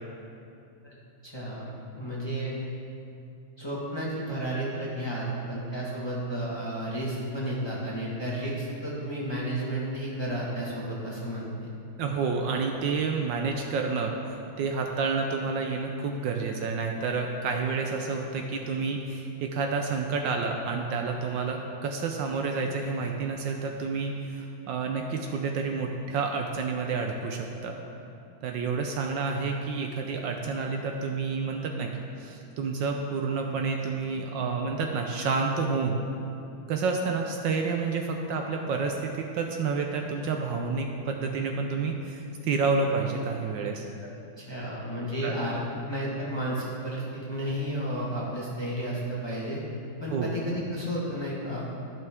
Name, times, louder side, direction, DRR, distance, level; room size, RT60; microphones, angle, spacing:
voice 1, 1.2-2.5 3.6-11.7 44.4-45.6 45.9-49.6 50.0-51.7, right 1 dB, 15° left, -6 dB, 1.1 m, -32 dB
voice 2, 12.0-27.8 28.4-36.0 36.7-43.8 45.2-45.4 50.1-50.3, right 4 dB, 75° right, 3 dB, 1.2 m, -29 dB
13.5 x 5.8 x 3.6 m, 2.6 s
omnidirectional pair, 2.2 m